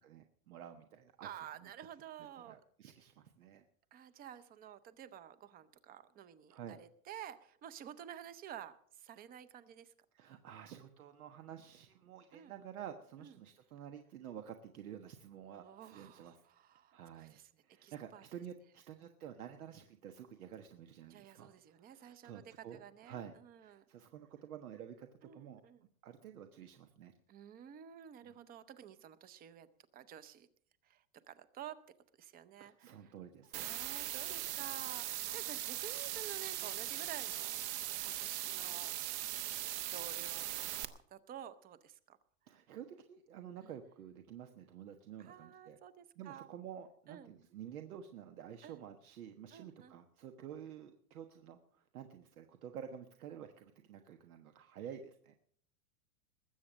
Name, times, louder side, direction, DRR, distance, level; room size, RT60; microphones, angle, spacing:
voice 1, 0.0-1.7 2.5-3.6 6.5-6.8 10.1-16.4 16.9-23.4 23.6-27.1 28.2-28.3 32.6-33.7 42.5-45.8 46.2-55.3, right 9 dB, 85° right, 6 dB, 1.4 m, -50 dB
voice 2, 1.2-2.6 3.9-9.9 12.3-12.5 13.2-13.3 15.6-17.5 17.8-18.2 21.1-23.8 25.2-25.8 27.3-29.7 29.9-30.5 30.8-31.8 32.2-32.9 33.6-38.9 39.2-39.6 39.9-42.2 45.2-46.5 47.1-47.3 48.6-48.8 49.5-50.0, right 10 dB, 20° right, 14 dB, 0.7 m, -51 dB
sound 1, 33.5-40.8, right 13 dB, 50° right, 1.1 m, -40 dB
20.5 x 7.7 x 6.3 m, 0.62 s
supercardioid pair, 145°, 42 cm